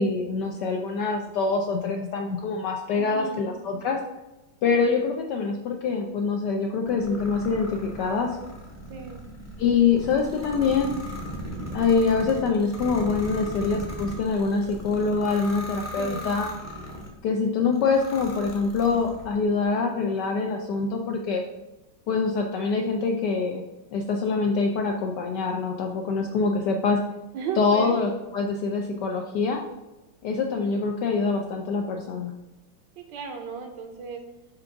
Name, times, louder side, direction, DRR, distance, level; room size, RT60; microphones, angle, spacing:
voice 1, 0.0-4.0 4.6-8.4 9.6-10.9 11.7-16.5 17.2-21.4 22.1-23.6 23.9-27.0 27.6-29.6 30.2-32.3, left 4 dB, 75° left, 2 dB, 1.0 m, -25 dB
voice 2, 2.9-3.6 8.9-9.2 13.4-13.5 16.0-16.3 27.3-28.0 33.0-34.2, right 5 dB, 70° right, 5 dB, 1.1 m, -35 dB
sound 1, 6.9-17.2 17.7-19.4, equal, 15° left, 0.5 m, -38 dB
5.2 x 3.5 x 5.7 m, 1.0 s
omnidirectional pair, 2.3 m